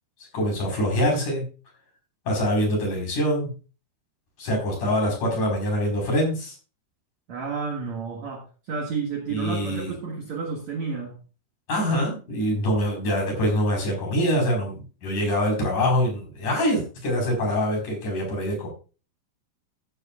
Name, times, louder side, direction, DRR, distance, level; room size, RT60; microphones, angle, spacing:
voice 1, 0.3-1.5 2.3-3.5 4.4-6.6 9.3-9.9 11.7-18.7, equal, 50° left, 0 dB, 5.9 m, -24 dB
voice 2, 7.3-11.2, right 5 dB, 60° right, 1 dB, 2.1 m, -31 dB
14.0 x 10.5 x 2.4 m, 0.34 s
omnidirectional pair, 4.8 m